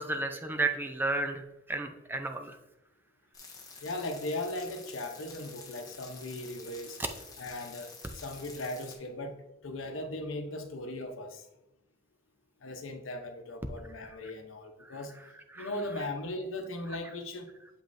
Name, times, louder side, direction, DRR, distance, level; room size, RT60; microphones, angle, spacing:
voice 1, 0.0-2.6 14.8-15.0 15.5-15.7, right 3 dB, 10° right, 5 dB, 0.5 m, -33 dB
sound 1, 3.3-9.0, left 4 dB, 20° left, 0.9 m, -49 dB
voice 2, 3.8-7.0 7.4-11.5 12.6-15.1 15.6-17.5, left 1 dB, 85° left, 6 dB, 0.8 m, -38 dB
7.4 x 5.3 x 2.6 m, 0.91 s
head